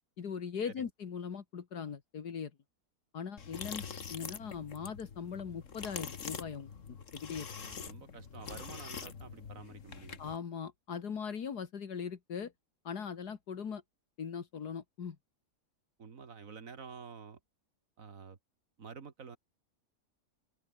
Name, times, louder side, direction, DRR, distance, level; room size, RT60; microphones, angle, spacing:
voice 1, 0.2-2.5 3.1-3.8 4.1-7.5 10.2-12.5 12.8-13.8 14.2-15.2, left 6 dB, 75° left, 2.2 m, -40 dB
sound 1, 3.4-10.4, left 6 dB, 50° left, 1.8 m, -44 dB
voice 2, 7.5-10.2 16.0-17.4 18.0-18.4 18.8-19.4, right 5 dB, 55° right, 2.2 m, -49 dB
omnidirectional pair, 1.7 m